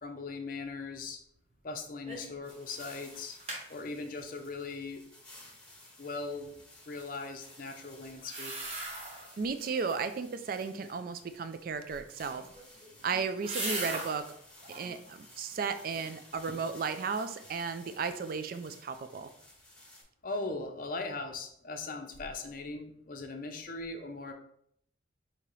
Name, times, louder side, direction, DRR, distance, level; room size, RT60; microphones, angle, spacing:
voice 1, 0.0-1.2 1.6-3.4 3.7-5.0 6.0-6.6 6.9-8.5 20.2-24.3, left 3 dB, 45° left, 4 dB, 0.5 m, -39 dB
sound 1, 2.1-2.4 2.7-2.8 3.1-3.6 8.1-9.4 9.7-10.3 12.2-14.2 14.6-15.0 15.5-16.1 16.5-16.6, right 2 dB, 30° right, 1.0 m, -39 dB
sound 2, 2.4-20.0, left 1 dB, 5° left, 1.2 m, -55 dB
voice 2, 9.4-12.4 13.0-14.3 14.7-19.3, right 5 dB, 45° right, 10 dB, 0.3 m, -34 dB
5.2 x 2.8 x 3.1 m, 0.68 s
head